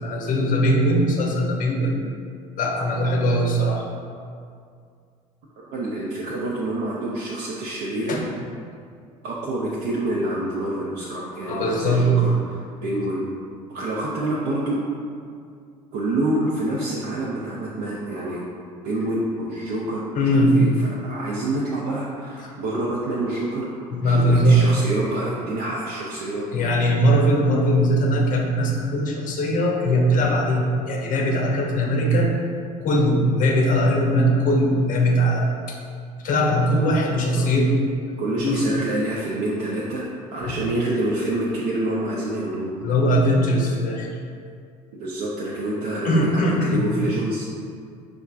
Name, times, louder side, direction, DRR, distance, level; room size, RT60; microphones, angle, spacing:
voice 1, 0.0-2.0 2.6-3.9 8.1-8.2 11.5-12.1 20.2-20.6 23.9-24.7 26.5-32.3 32.8-35.8 36.2-37.8 38.4-38.6 40.5-40.6 42.8-44.1 46.0-46.9, equal, 45° left, 0 dB, 0.6 m, -20 dB
voice 2, 5.6-8.2 9.2-13.3 13.7-14.8 15.9-18.4 18.8-20.0 20.3-26.5 37.3-37.4 38.2-42.7 44.9-47.5, right 1 dB, 60° right, -5 dB, 0.5 m, -27 dB
4.4 x 2.4 x 2.4 m, 2.3 s
hypercardioid pair, 65°, 19 cm